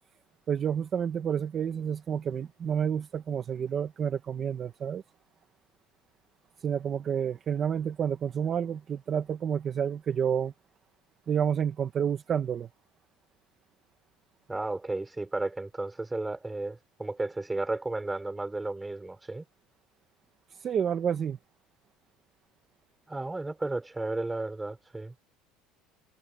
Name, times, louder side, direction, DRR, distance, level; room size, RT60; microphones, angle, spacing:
voice 1, 0.5-5.0 6.6-10.5 11.3-12.7 20.5-21.4, right 8 dB, 25° right, 1.0 m, -29 dB
voice 2, 14.5-19.4 23.1-25.2, right 2 dB, 10° right, 4.8 m, -33 dB
cardioid pair, 170°, 0 cm